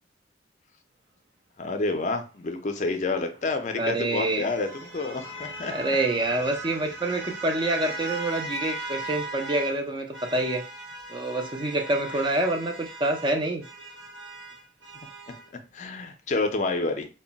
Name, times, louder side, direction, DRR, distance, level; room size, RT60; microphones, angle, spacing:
voice 1, 1.6-5.7 15.7-17.1, left 3 dB, 40° left, 6 dB, 0.4 m, -29 dB
sound 1, 3.2-9.8 10.1-15.5, right 2 dB, 75° right, 0.7 m, -38 dB
voice 2, 3.8-4.5 5.7-10.6 11.1-13.6, right 2 dB, 25° right, 3 dB, 0.4 m, -27 dB
2.2 x 2.1 x 3.8 m, 0.33 s
head